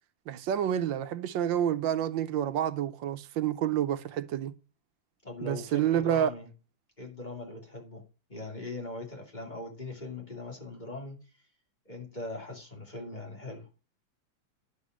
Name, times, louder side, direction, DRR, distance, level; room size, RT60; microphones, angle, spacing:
voice 1, 0.3-4.5 5.4-6.3, right 10 dB, 80° right, 1.4 m, -28 dB
voice 2, 5.2-6.5 7.0-8.0 8.3-11.4 11.9-13.7, left 2 dB, 20° left, 2.6 m, -40 dB
11.0 x 4.8 x 6.2 m
omnidirectional pair, 2.1 m